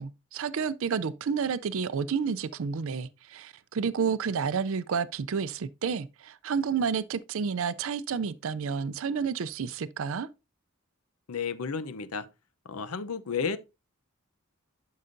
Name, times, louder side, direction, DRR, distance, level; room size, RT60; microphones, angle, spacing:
voice 1, 0.0-10.3, right 6 dB, 65° right, 0.4 m, -30 dB
voice 2, 11.3-12.3 12.6-13.6, left 5 dB, 85° left, 0.7 m, -32 dB
11.0 x 5.5 x 2.6 m
head